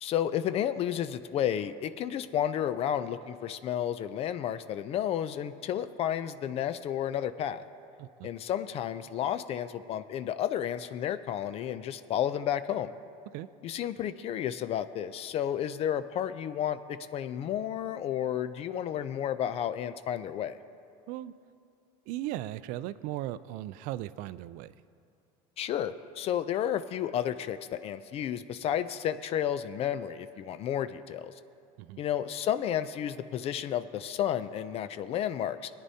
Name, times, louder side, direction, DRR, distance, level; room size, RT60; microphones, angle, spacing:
voice 1, 0.0-7.6 8.2-12.9 13.6-20.6 25.6-31.3 32.0-35.7, left 10 dB, 45° left, 13 dB, 0.4 m, -32 dB
voice 2, 22.1-24.7 31.8-32.0, right 14 dB, 70° right, 16 dB, 0.4 m, -37 dB
21.0 x 9.7 x 2.8 m, 2.4 s
cardioid pair, 130°, 14 cm